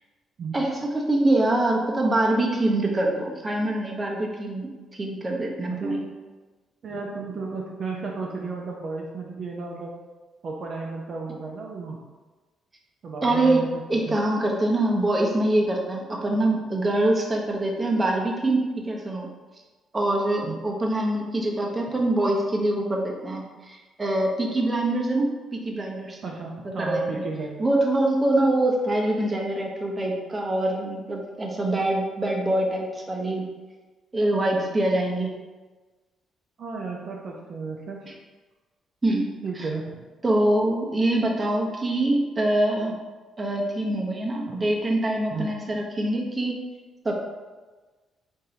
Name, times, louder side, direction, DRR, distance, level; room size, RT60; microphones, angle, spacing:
voice 1, 0.5-6.0 13.2-13.6 13.9-19.3 19.9-26.2 26.8-27.2 27.6-33.5 34.1-35.3 39.0-39.7 40.2-43.0 43.4-46.5 47.0-47.3, right 1 dB, 25° right, -1 dB, 0.8 m, -24 dB
voice 2, 6.8-9.9 10.4-12.0 13.0-14.2 20.4-20.6 26.2-27.7 36.6-38.0 39.4-40.0 44.5-44.6 45.3-45.5, right 4 dB, 55° right, -1 dB, 0.5 m, -33 dB
3.6 x 2.7 x 4.4 m, 1.3 s
cardioid pair, 90°, 0 cm